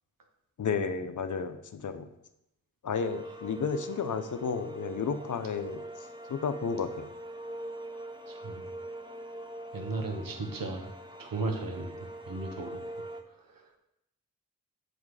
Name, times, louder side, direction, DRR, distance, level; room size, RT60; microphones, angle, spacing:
voice 1, 0.6-2.1 2.8-5.8 6.3-7.1, left 5 dB, 60° left, 9 dB, 0.7 m, -32 dB
sound 1, 2.9-13.2, right 1 dB, 15° right, 0.9 m, -43 dB
voice 2, 8.3-8.7 9.7-10.9 11.2-13.7, right 3 dB, 80° right, 3 dB, 1.3 m, -36 dB
7.4 x 4.3 x 4.9 m, 0.83 s
cardioid pair, 55°, 34 cm